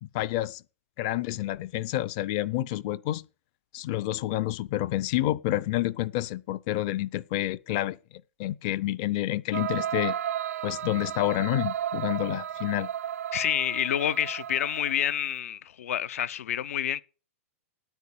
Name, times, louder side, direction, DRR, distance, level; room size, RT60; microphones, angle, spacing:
voice 1, 0.0-0.6 1.0-3.2 3.7-8.0 8.4-10.2 10.6-12.9, left 15 dB, 35° left, 0.6 m, -29 dB
sound 1, 9.5-15.1, right 10 dB, 85° right, 0.6 m, -34 dB
voice 2, 13.3-17.0, left 10 dB, 75° left, 0.9 m, -28 dB
9.5 x 9.1 x 8.5 m
supercardioid pair, 165°, 8 cm